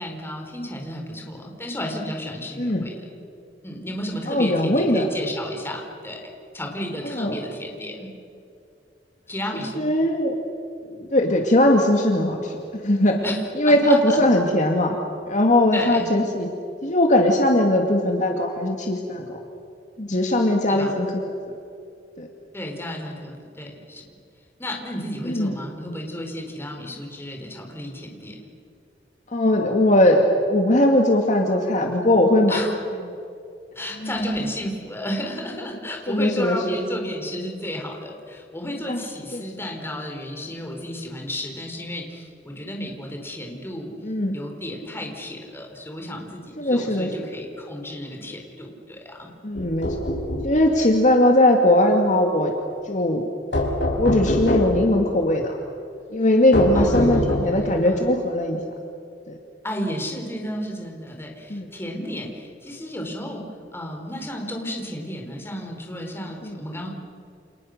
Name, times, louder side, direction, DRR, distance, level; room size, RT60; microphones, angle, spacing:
voice 1, 0.0-3.2 3.6-6.2 6.5-8.1 9.3-9.9 13.2-14.2 15.7-16.2 20.7-21.0 22.5-24.1 24.6-28.4 32.5-32.7 33.7-43.9 44.3-49.3 56.7-58.1 59.6-66.9, equal, 15° left, 2 dB, 4.4 m, -32 dB
voice 2, 4.3-5.1 7.0-7.4 9.8-10.3 10.8-12.6 12.8-13.2 13.6-15.0 15.3-16.5 16.8-19.4 20.0-21.3 22.2-22.3 25.3-25.5 29.3-30.2 30.5-32.6 34.0-34.1 36.1-36.6 38.9-39.0 39.3-39.4 44.0-44.4 46.6-47.1 49.4-50.1 50.4-52.5 52.9-53.2 54.0-55.6 56.1-58.6 59.3-59.4 61.5-61.7 66.4-66.6, left 1 dB, 45° left, 2 dB, 2.2 m, -20 dB
sound 1, 49.5-50.5 53.5-54.9 56.5-57.7, left 1 dB, 85° left, 5.9 m, -23 dB
29.5 x 28.5 x 6.6 m, 2.6 s
head